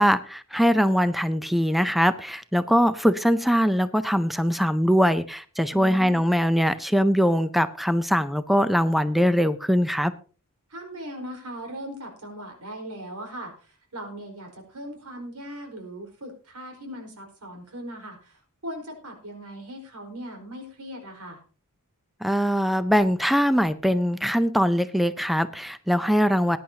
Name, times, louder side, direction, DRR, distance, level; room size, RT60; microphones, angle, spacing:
voice 1, 0.0-10.1 22.2-26.6, equal, ahead, 12 dB, 0.5 m, -22 dB
voice 2, 5.7-6.2 10.7-21.4, equal, 85° right, 3 dB, 4.5 m, -39 dB
20.0 x 10.5 x 2.8 m, 0.37 s
head